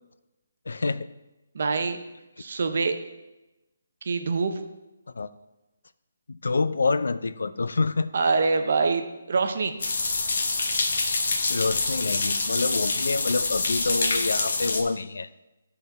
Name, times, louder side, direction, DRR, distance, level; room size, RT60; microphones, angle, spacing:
voice 1, 0.7-1.1 5.1-5.3 6.3-8.1 11.5-15.3, left 3 dB, 80° left, 14 dB, 0.4 m, -27 dB
voice 2, 1.5-2.0 2.4-2.9 4.0-4.6 8.1-9.7, right 4 dB, 45° right, 7 dB, 0.5 m, -24 dB
sound 1, 9.8-14.8, left 3 dB, 50° left, 0.8 m, -26 dB
11.5 x 3.9 x 4.0 m, 1.0 s
hypercardioid pair, 180°, 0 cm